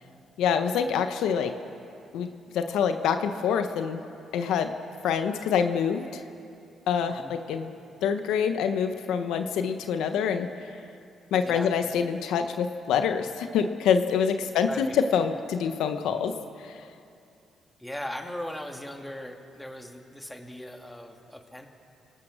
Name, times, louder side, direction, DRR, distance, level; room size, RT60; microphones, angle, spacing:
voice 1, 0.4-1.5 2.1-4.0 4.3-4.7 5.0-6.2 6.9-7.7 8.0-10.5 11.3-16.3 16.6-16.8, left 7 dB, 85° left, 8 dB, 1.1 m, -26 dB
voice 2, 7.0-7.4 11.4-11.7 14.6-15.0 17.8-21.7, left 1 dB, 5° left, 3 dB, 2.3 m, -39 dB
29.0 x 18.0 x 6.4 m, 2.6 s
cardioid pair, 90°, 0 cm